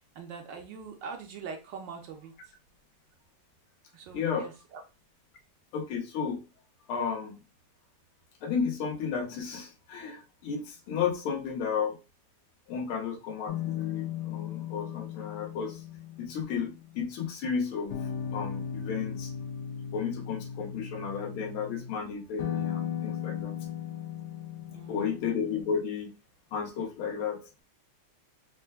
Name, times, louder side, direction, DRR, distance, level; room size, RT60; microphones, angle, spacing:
voice 1, 0.0-2.5 3.9-4.8 24.7-25.2, right 5 dB, 70° right, 4 dB, 1.2 m, -43 dB
voice 2, 4.1-4.5 5.7-6.4 6.9-7.4 8.4-12.0 12.7-15.8 16.2-18.0 18.3-19.3 19.9-23.6 24.9-26.1 26.5-27.4, left 6 dB, 85° left, 4 dB, 1.6 m, -33 dB
sound 1, 13.5-17.2 17.9-21.9 22.4-25.8, left 9 dB, 65° left, 1.0 m, -37 dB
4.3 x 2.2 x 3.3 m, 0.29 s
omnidirectional pair, 2.3 m